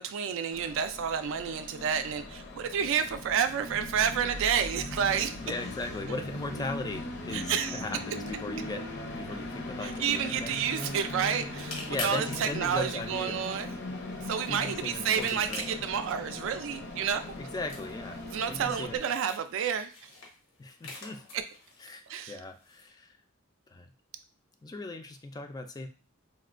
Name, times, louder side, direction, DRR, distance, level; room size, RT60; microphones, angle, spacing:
voice 1, 0.0-5.4 7.3-7.8 9.8-13.7 14.3-17.4 18.2-20.1 21.3-21.4 22.1-22.3, right 7 dB, 65° right, 10 dB, 0.3 m, -30 dB
Train, 0.5-19.0, left 2 dB, 55° left, 0.6 m, -39 dB
voice 2, 5.4-10.6 11.9-13.4 14.5-15.9 17.4-18.2 18.5-19.0 20.6-21.2 21.8-23.2 23.7-23.9 24.6-25.9, left 2 dB, 20° left, 6 dB, 0.3 m, -38 dB
sound 1, 9.9-22.9, left 3 dB, 90° left, 1.1 m, -47 dB
4.0 x 2.2 x 2.4 m, 0.35 s
head